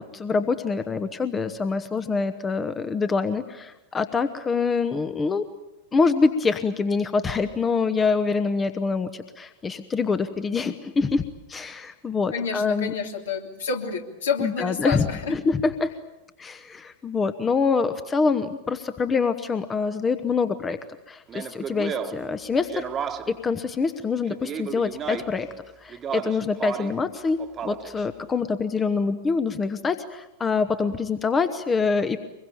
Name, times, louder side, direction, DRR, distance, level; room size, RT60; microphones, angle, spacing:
voice 1, 0.0-5.4 5.9-12.9 14.4-15.9 16.4-20.8 21.1-22.9 23.3-25.5 25.8-32.2, left 4 dB, 20° left, 10 dB, 1.2 m, -25 dB
voice 2, 12.3-15.3, left 5 dB, 65° left, 3 dB, 3.2 m, -29 dB
Speech, 21.3-23.5 24.3-25.4 25.9-27.0 27.4-28.0, right 7 dB, 25° right, 1.5 m, -33 dB
25.0 x 22.0 x 8.8 m, 0.93 s
figure-of-eight pair, 90°, 0 cm